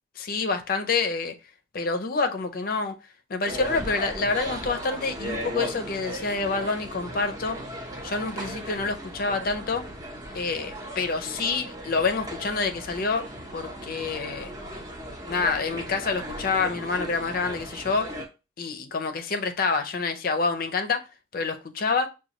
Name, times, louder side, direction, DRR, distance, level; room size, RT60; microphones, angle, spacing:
voice 1, 0.2-1.3 1.7-2.9 3.3-7.6 8.0-9.8 10.3-13.3 13.5-14.5 15.3-18.1 18.6-21.0 21.3-22.1, left 4 dB, 50° left, 0.5 m, -27 dB
sound 1, 3.5-18.3, right 1 dB, 20° right, 0.8 m, -37 dB
6.2 x 2.3 x 2.9 m
head